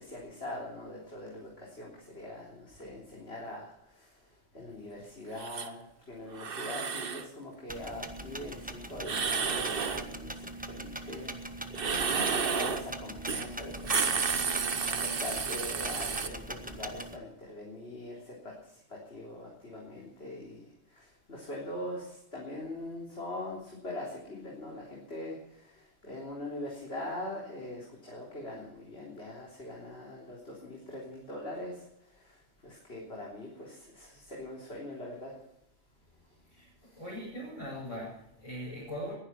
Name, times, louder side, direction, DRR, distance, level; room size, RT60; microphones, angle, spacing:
voice 1, 0.0-4.1 4.5-11.8 12.4-14.3 14.9-20.7 20.9-31.8 32.1-32.4 32.6-35.3 36.9-37.0, left 1 dB, 55° left, -3 dB, 4.0 m, -42 dB
sound 1, 5.4-5.7 6.3-7.3 9.0-10.1 11.7-12.9 13.3-13.5 13.8-16.3, right 5 dB, 50° right, 1.3 m, -31 dB
sound 2, 7.7-17.2, right 1 dB, 5° right, 1.2 m, -41 dB
voice 2, 36.4-39.1, equal, 30° left, -7 dB, 6.8 m, -41 dB
20.5 x 11.0 x 5.9 m, 0.79 s
omnidirectional pair, 1.2 m